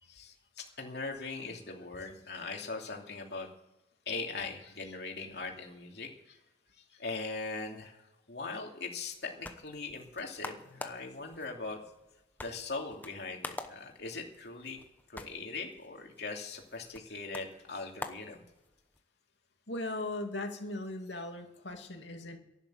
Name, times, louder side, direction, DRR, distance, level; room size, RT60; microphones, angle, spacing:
voice 1, 0.0-3.5 4.1-6.4 6.7-11.8 12.4-14.8 15.1-18.4, left 3 dB, 65° left, 1 dB, 2.8 m, -40 dB
sound 1, 9.0-19.0, left 2 dB, 10° left, 0.9 m, -47 dB
voice 2, 19.7-22.4, left 2 dB, 90° left, 4 dB, 2.5 m, -38 dB
11.5 x 11.5 x 8.0 m, 0.96 s
head